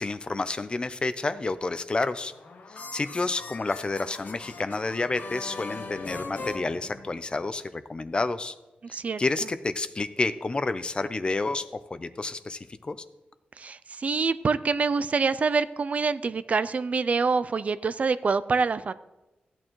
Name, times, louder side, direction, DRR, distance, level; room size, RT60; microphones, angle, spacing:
voice 1, 0.0-2.3 2.7-8.6 8.9-13.0, left 3 dB, 30° left, 12 dB, 0.5 m, -30 dB
sound 1, 2.2-7.5, left 3 dB, 60° left, 1.0 m, -41 dB
voice 2, 8.8-9.2 13.6-18.9, right 4 dB, 45° right, 14 dB, 0.3 m, -26 dB
15.0 x 8.7 x 3.1 m, 1.0 s
wide cardioid pair, 125°, 3 cm